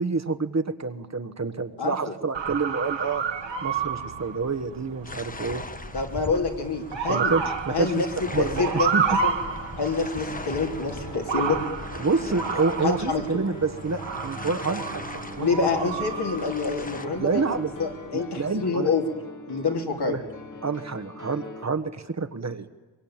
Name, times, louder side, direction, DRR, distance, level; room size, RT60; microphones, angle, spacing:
voice 1, 0.0-3.2 3.6-5.6 7.1-8.0 8.3-9.2 12.0-15.7 17.2-17.7 18.1-18.9 20.1-20.2 20.6-22.7, right 4 dB, 35° right, 7 dB, 1.3 m, -28 dB
voice 2, 1.8-2.1 5.9-7.3 7.7-8.1 8.4-8.9 9.2-9.3 9.8-11.6 12.8-13.2 15.4-19.0 19.5-20.2, left 4 dB, 60° left, 2 dB, 3.2 m, -27 dB
Motor vehicle (road) / Siren, 2.3-17.9, right 6 dB, 75° right, 1.9 m, -31 dB
sound 1, 5.0-17.1, left 2 dB, 20° left, 1.1 m, -40 dB
Piano, 7.9-21.6, left 3 dB, 45° left, 1.9 m, -42 dB
23.5 x 22.0 x 8.8 m, 1.2 s
wide cardioid pair, 85°, 44 cm